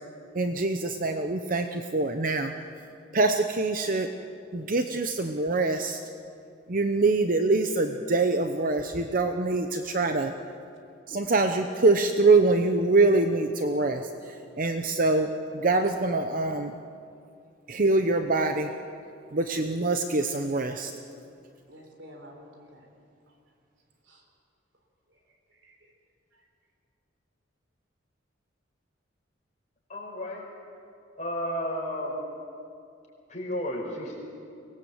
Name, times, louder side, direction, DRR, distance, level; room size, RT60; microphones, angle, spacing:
voice 1, 0.3-2.5 3.1-4.1 4.5-6.0 6.7-10.3 11.1-16.7 17.7-18.7 19.3-20.9, right 3 dB, 45° right, 6 dB, 0.8 m, -24 dB
voice 2, 21.7-22.9 23.3-23.4 24.0-24.2 25.1-25.2 25.5-25.9 26.3-26.5, equal, 70° right, 2 dB, 4.0 m, -51 dB
voice 3, 29.9-30.4 31.2-32.2 33.3-34.2, equal, 35° left, -2 dB, 5.2 m, -32 dB
24.0 x 19.0 x 7.9 m, 2.5 s
head